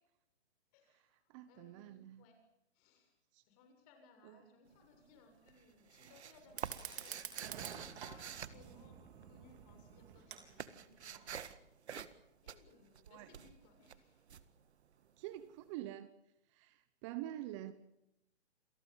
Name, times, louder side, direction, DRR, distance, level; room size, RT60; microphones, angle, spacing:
voice 1, 0.7-2.4 2.7-3.1 3.5-11.6 12.4-14.3, left 4 dB, 35° left, 7.2 m, -65 dB
voice 2, 1.3-2.2 3.3-3.4 13.1-13.3 15.2-16.1 16.5-17.7, right 14 dB, 25° right, 1.0 m, -46 dB
sound 1, 4.7-5.2 5.5-9.5 9.8-15.4, right 8 dB, 75° right, 1.9 m, -48 dB
Fire, 6.5-11.5, right 9 dB, 50° right, 4.4 m, -50 dB
28.5 x 18.5 x 7.3 m
hypercardioid pair, 150°, 34 cm